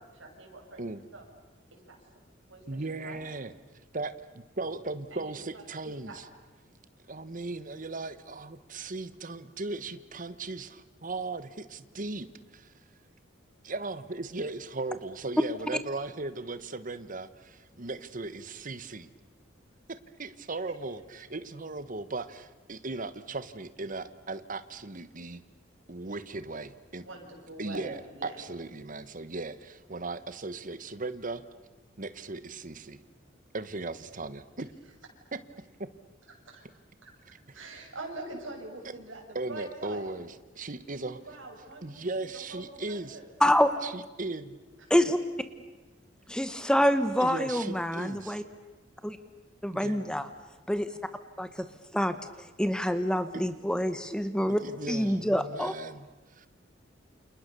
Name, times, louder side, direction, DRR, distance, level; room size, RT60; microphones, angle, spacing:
voice 1, 0.1-0.8 1.1-1.2 1.7-2.0 2.5-3.2 5.1-6.2 27.0-28.4 36.5-36.6 37.0-37.1 37.5-40.1 41.1-43.3, right 2 dB, 80° right, 0 dB, 7.0 m, -44 dB
voice 2, 2.7-3.5 3.9-6.2 7.1-12.7 13.6-19.1 19.9-25.4 25.9-27.1 27.6-31.4 32.0-33.0 33.5-34.7 35.3-35.4 35.8-35.9 37.5-37.8 39.3-41.2 41.8-43.2 43.8-44.6 47.2-48.4 49.7-50.2 53.3-53.4 54.5-56.5, right 3 dB, 45° right, 13 dB, 1.3 m, -37 dB
voice 3, 43.4-43.7 44.9-45.2 46.3-48.4 49.0-49.2 49.6-50.3 50.7-50.9 51.4-51.7 51.9-52.2 52.6-54.6 54.9-55.7, equal, 5° left, 10 dB, 1.0 m, -26 dB
29.5 x 28.0 x 6.9 m, 1.2 s
head